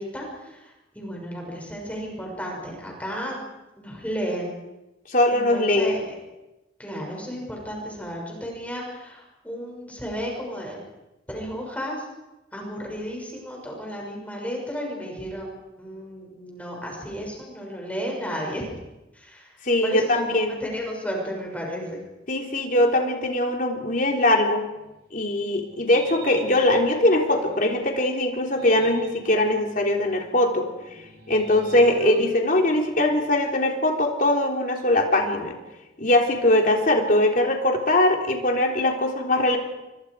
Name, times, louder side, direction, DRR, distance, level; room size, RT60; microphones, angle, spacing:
voice 1, 0.0-3.4 3.8-4.6 5.3-6.1 6.8-10.8 11.3-12.1 12.5-18.6 19.1-19.5 19.8-20.3 20.6-22.0, equal, 10° left, -1 dB, 6.5 m, -33 dB
voice 2, 5.1-6.0 19.6-20.6 22.3-24.7 25.1-30.7 31.3-35.6 36.0-39.6, left 1 dB, 45° left, 1 dB, 3.6 m, -21 dB
sound 1, 24.7-27.8 28.4-33.5, right 3 dB, 60° right, 7.0 m, -40 dB
28.0 x 24.0 x 4.9 m, 0.99 s
head